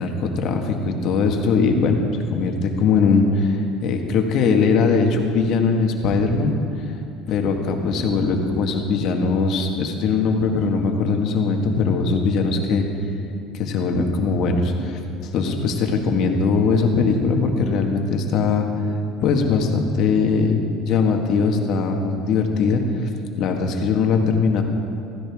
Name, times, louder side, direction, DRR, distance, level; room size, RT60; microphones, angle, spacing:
voice 1, 0.0-2.0 2.3-6.6 7.3-12.8 13.5-18.7 19.2-20.6 20.9-22.8 23.4-24.6, left 4 dB, 55° left, 3 dB, 1.6 m, -20 dB
16.0 x 15.0 x 3.6 m, 2.5 s
cardioid pair, 125°, 0 cm